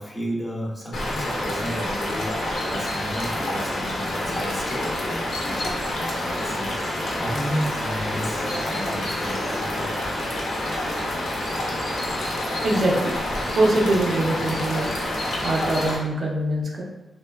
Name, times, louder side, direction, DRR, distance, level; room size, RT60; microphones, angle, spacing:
voice 1, 0.0-6.7 7.2-10.1, equal, 15° left, -2 dB, 0.4 m, -32 dB
sound 1, 0.9-15.9, left 1 dB, 80° left, 0.6 m, -28 dB
voice 2, 12.6-13.2 13.5-14.9 15.4-16.8, right 1 dB, 50° right, -2 dB, 0.5 m, -23 dB
2.9 x 2.1 x 2.2 m, 0.98 s
wide cardioid pair, 150°, 0 cm